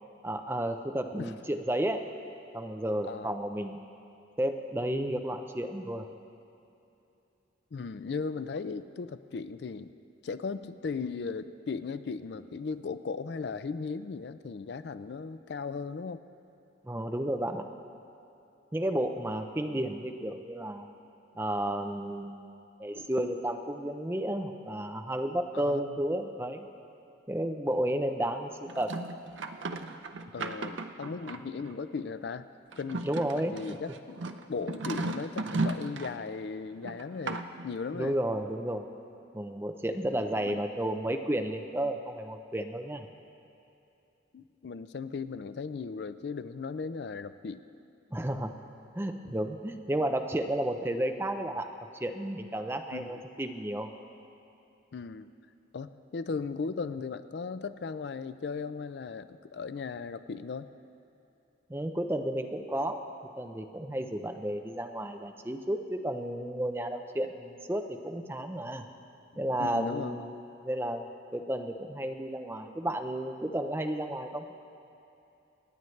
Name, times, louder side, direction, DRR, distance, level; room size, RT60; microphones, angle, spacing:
voice 1, 0.2-2.1 2.5-3.8 4.4-6.0 16.8-17.7 18.7-20.9 21.4-22.5 22.8-26.7 27.3-28.9 33.0-33.8 37.9-38.9 39.3-43.1 48.1-48.6 49.0-51.7 51.9-53.9 61.7-63.0 63.4-68.8 69.4-70.3 70.6-74.5, right 1 dB, 10° right, 6 dB, 0.5 m, -32 dB
voice 2, 3.0-3.4 7.7-9.9 10.2-16.2 25.5-26.0 30.3-32.5 32.8-33.1 33.3-34.2 34.5-38.2 40.5-40.6 44.3-47.6 52.9-53.2 54.9-55.3 55.7-60.7 69.6-70.2, left 4 dB, 60° left, 12 dB, 0.4 m, -37 dB
sound 1, 28.7-31.7 32.7-36.2 36.8-37.7, right 2 dB, 75° right, 0.6 m, -36 dB
27.0 x 9.1 x 3.2 m, 2.8 s
head